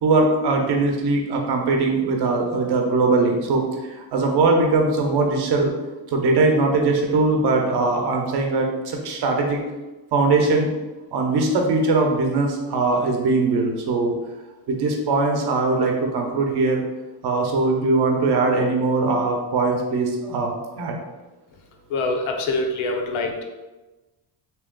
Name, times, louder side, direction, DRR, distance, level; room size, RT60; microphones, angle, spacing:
voice 1, 0.0-5.7 6.1-9.6 10.1-10.7 11.1-14.1 14.7-16.8 17.2-20.9, right 3 dB, 55° right, 2 dB, 0.8 m, -21 dB
voice 2, 21.9-23.4, left 2 dB, 85° left, 2 dB, 0.8 m, -24 dB
3.4 x 3.0 x 3.7 m, 1.1 s
cardioid pair, 170°, 47 cm